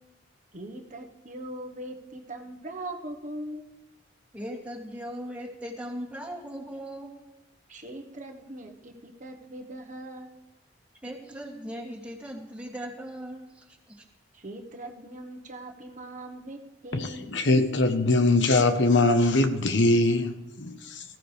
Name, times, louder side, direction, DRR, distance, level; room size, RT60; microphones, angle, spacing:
voice 1, 0.5-3.7 7.7-10.4 14.3-17.4, right 1 dB, 45° right, 1.3 m, -41 dB
voice 2, 4.3-7.1 11.0-14.0, equal, 10° right, 2.7 m, -38 dB
voice 3, 16.9-21.0, left 2 dB, 80° left, 1.2 m, -22 dB
19.0 x 15.0 x 3.4 m
head